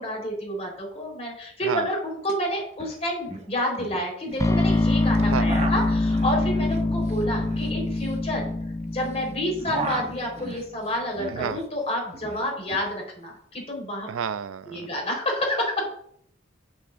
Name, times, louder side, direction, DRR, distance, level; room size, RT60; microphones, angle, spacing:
voice 1, 0.0-8.5 8.9-14.1 14.7-15.9, left 1 dB, 30° left, 0 dB, 4.1 m, -29 dB
sound 1, 2.2-2.3 2.6-3.0 3.3-4.5 5.1-9.1 9.4-11.7 11.9-12.9, right 3 dB, 30° right, 1.0 m, -36 dB
sound 2, 4.4-10.4, left 2 dB, 15° left, 0.4 m, -24 dB
voice 2, 11.3-11.6 14.1-14.9, right 7 dB, 75° right, 15 dB, 0.5 m, -30 dB
10.5 x 9.4 x 2.6 m, 0.64 s
head